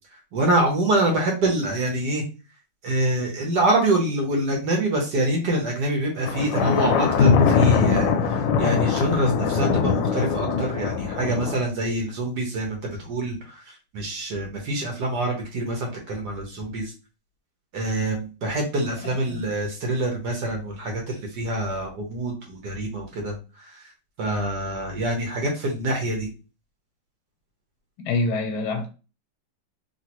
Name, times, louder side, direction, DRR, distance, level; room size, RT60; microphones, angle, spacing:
voice 1, 0.1-2.2 2.8-16.9 17.7-23.9 24.2-26.3, right 1 dB, 60° right, 1.3 m, -26 dB
Thunder, 6.3-11.5, left 5 dB, 75° left, 1.2 m, -21 dB
voice 2, 19.0-19.4 28.0-28.9, left 3 dB, 90° left, 1.5 m, -26 dB
3.1 x 3.0 x 2.9 m
omnidirectional pair, 2.2 m